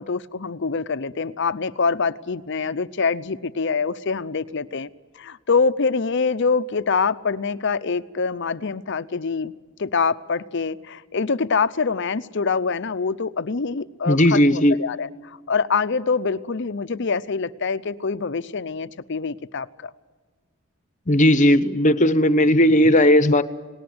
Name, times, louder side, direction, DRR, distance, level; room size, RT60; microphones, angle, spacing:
voice 1, 0.0-4.9 5.1-9.5 9.8-19.9, left 5 dB, 55° left, 14 dB, 0.7 m, -25 dB
voice 2, 14.1-14.7 21.1-23.4, left 1 dB, 35° left, 13 dB, 1.0 m, -16 dB
28.5 x 19.0 x 7.9 m, 1.5 s
head